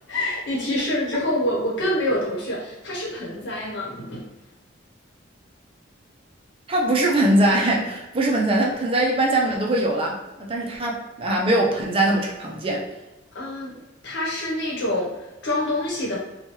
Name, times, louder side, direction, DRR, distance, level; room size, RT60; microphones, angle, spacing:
voice 1, 0.1-4.3 13.3-13.8 14.0-15.1 15.4-16.2, left 1 dB, 65° left, -4 dB, 1.0 m, -26 dB
voice 2, 6.7-12.8, right 1 dB, 30° right, -2 dB, 0.4 m, -22 dB
3.0 x 2.2 x 3.0 m, 0.99 s
head